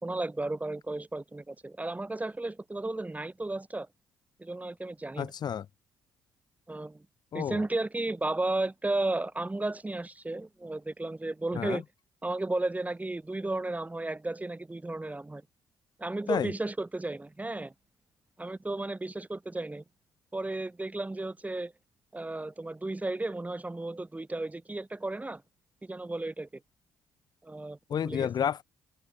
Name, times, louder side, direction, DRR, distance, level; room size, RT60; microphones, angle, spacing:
voice 1, 0.0-3.9 4.4-5.3 6.7-7.1 7.3-11.8 12.2-15.4 16.0-17.7 18.4-19.8 20.3-21.7 22.1-25.4 25.8-26.6 27.4-28.3, right 2 dB, 15° right, 5.6 m, -34 dB
voice 2, 5.2-5.6 7.3-7.6 11.5-11.8 16.3-16.5 27.9-28.6, left 8 dB, 50° left, 1.5 m, -30 dB
open air
hypercardioid pair, 45°, 9 cm